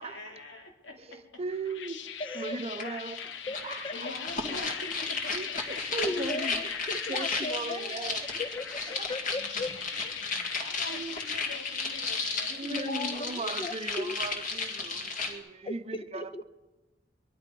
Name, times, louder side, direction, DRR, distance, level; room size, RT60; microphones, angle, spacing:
voice 1, 0.0-1.4 3.9-6.0 10.0-13.2, left 2 dB, 90° left, 3.0 m, -45 dB
voice 2, 1.1-2.0 2.3-3.2 3.6-4.1 5.3-5.5 5.9-6.6 7.1-8.4 9.0-9.1 10.9-11.2 12.5-16.4, right 3 dB, 35° right, 0.7 m, -38 dB
sound 1, 1.5-12.6, left 8 dB, 70° left, 0.7 m, -41 dB
voice 3, 2.2-3.0 3.2-3.9 6.0-8.1 8.4-8.6 8.9-9.9 12.6-14.2 15.6-16.4, left 2 dB, 30° left, 0.6 m, -37 dB
sound 2, 2.8-2.9 3.2-15.3, left 4 dB, 45° left, 2.0 m, -34 dB
22.5 x 12.0 x 5.3 m
head